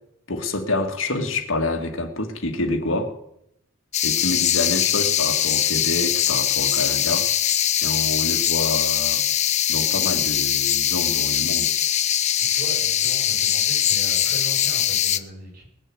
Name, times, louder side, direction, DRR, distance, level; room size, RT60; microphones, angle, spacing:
voice 1, 0.3-3.1 4.0-7.3 7.8-9.2 9.7-11.7, left 2 dB, 80° left, 4 dB, 1.9 m, -27 dB
sound 1, 3.9-15.2, left 10 dB, 35° left, 0.5 m, -22 dB
voice 2, 12.5-15.7, right 1 dB, 45° right, -1 dB, 6.8 m, -38 dB
19.5 x 6.7 x 7.8 m, 0.79 s
head